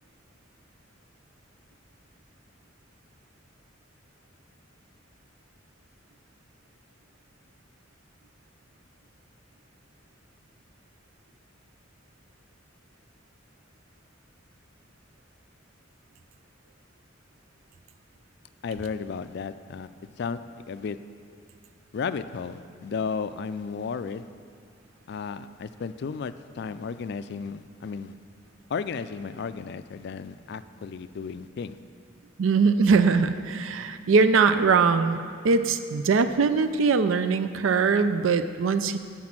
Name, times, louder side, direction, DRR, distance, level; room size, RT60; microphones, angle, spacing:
voice 1, 18.6-19.9 20.2-20.4 20.7-21.0 21.9-24.3 25.1-28.2 28.7-31.8, left 5 dB, 55° left, 12 dB, 0.3 m, -34 dB
voice 2, 32.4-39.0, right 5 dB, 85° right, 10 dB, 0.4 m, -22 dB
9.5 x 6.1 x 7.3 m, 2.2 s
head